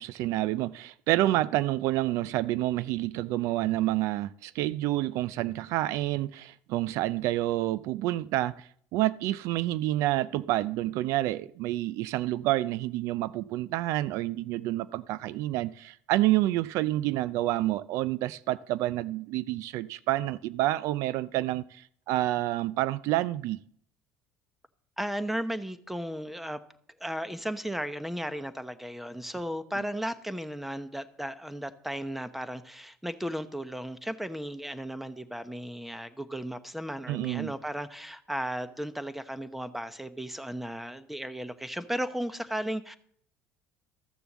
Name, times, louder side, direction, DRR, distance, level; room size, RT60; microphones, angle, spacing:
voice 1, 0.0-23.6 37.1-37.5, right 16 dB, 70° right, 0.4 m, -28 dB
voice 2, 25.0-26.6 27.0-43.0, equal, 5° right, 1.0 m, -35 dB
14.0 x 6.9 x 7.2 m
supercardioid pair, 100°, 5 cm